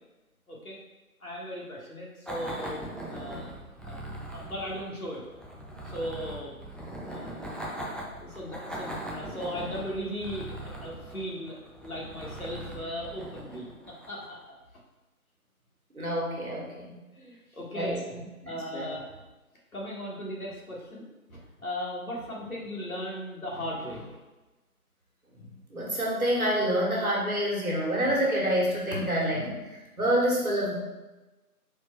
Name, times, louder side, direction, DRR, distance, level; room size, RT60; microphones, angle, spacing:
voice 1, 0.5-0.8 1.2-3.5 3.8-4.0 4.3-5.2 5.8-6.5 7.0-7.5 7.8-11.6 11.8-14.4 17.1-18.1 18.5-19.2 19.7-24.2, equal, 65° left, -3 dB, 1.3 m, -37 dB
sound 1, 2.2-14.4, right 1 dB, ahead, 0.4 m, -40 dB
voice 2, 15.9-17.0 17.7-17.9 18.4-18.9 25.3-30.7, equal, 70° right, -3 dB, 1.4 m, -27 dB
4.3 x 2.3 x 4.2 m, 1.1 s
figure-of-eight pair, 180°, 45 cm